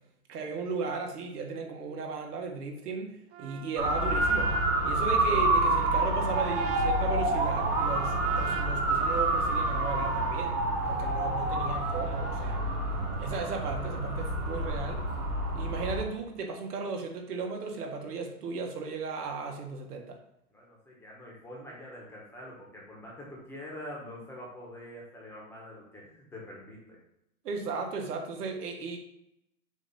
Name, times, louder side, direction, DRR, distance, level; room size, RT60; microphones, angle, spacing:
voice 1, 0.3-3.1 3.4-4.5 4.8-10.5 10.9-12.6 13.2-15.0 15.5-20.2 27.4-29.0, right 4 dB, 80° right, 3 dB, 1.5 m, -36 dB
Trumpet, 3.3-10.6, right 9 dB, 45° right, 0.6 m, -43 dB
Motor vehicle (road) / Siren, 3.8-16.0, right 2 dB, 20° right, 1.2 m, -28 dB
voice 2, 20.5-27.0, left 1 dB, 5° left, -4 dB, 1.1 m, -45 dB
7.0 x 2.9 x 5.5 m, 0.81 s
hypercardioid pair, 155°, 45 cm